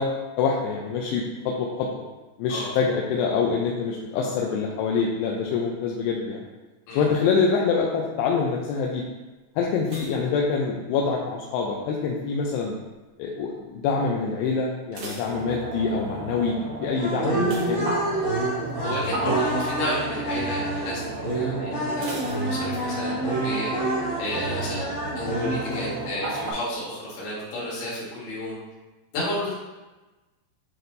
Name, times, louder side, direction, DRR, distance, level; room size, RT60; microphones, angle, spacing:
voice 1, 0.0-2.0 2.4-6.5 6.9-9.0 9.6-12.7 13.2-17.9 21.5-21.8 25.2-25.9, left 5 dB, 85° left, -2 dB, 2.7 m, -26 dB
sound 1, 9.8-11.3 11.6-12.1 12.7-13.1 13.3-13.4 13.8-13.9 14.6-16.1 17.4-18.5 18.9-19.2 19.5-19.6 22.0-23.2 23.4-23.5, right 1 dB, 90° right, 1.3 m, -42 dB
sound 2, 15.3-26.5, right 2 dB, 70° right, 2.9 m, -34 dB
sound 3, 16.9-26.2, right 1 dB, 40° left, 1.5 m, -28 dB
voice 2, 18.8-23.7 24.2-24.9 25.2-28.6 29.1-29.5, left 1 dB, 70° left, -7 dB, 3.6 m, -32 dB
9.3 x 4.2 x 2.7 m, 1.2 s
omnidirectional pair, 4.7 m